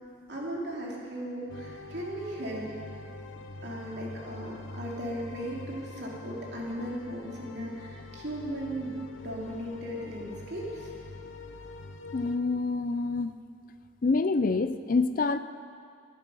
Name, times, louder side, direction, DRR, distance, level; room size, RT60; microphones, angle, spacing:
voice 1, 0.3-2.7 3.6-8.9 9.2-10.9, right 1 dB, 60° right, -3 dB, 3.2 m, -37 dB
sound 1, 1.5-12.4, left 2 dB, 85° left, 0.9 m, -44 dB
voice 2, 12.1-13.4 14.0-15.4, left 3 dB, 45° left, 11 dB, 0.4 m, -26 dB
20.0 x 10.5 x 5.4 m, 2.2 s
head